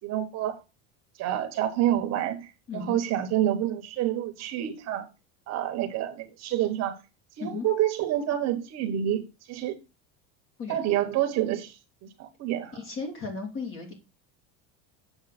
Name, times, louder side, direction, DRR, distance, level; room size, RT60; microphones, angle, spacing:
voice 1, 0.0-0.6 1.2-5.1 5.5-7.0 7.4-9.2 9.5-9.8 10.7-11.8 12.2-12.7, right 12 dB, 40° right, 1.3 m, -28 dB
voice 2, 2.7-3.0 7.4-7.7 10.6-10.8 12.7-13.9, left 4 dB, 30° left, 3.0 m, -35 dB
7.9 x 6.6 x 4.2 m
cardioid pair, 160°, 39 cm